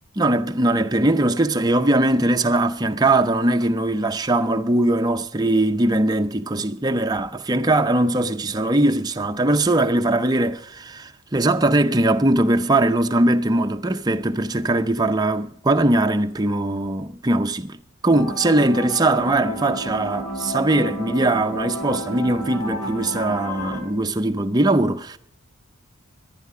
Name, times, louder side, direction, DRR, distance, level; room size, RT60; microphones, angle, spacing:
voice 1, 0.2-17.8 18.0-25.2, right 2 dB, 20° right, 0.6 m, -20 dB
sound 1, 18.1-23.8, equal, 70° left, 4.7 m, -31 dB
18.0 x 11.5 x 5.0 m
head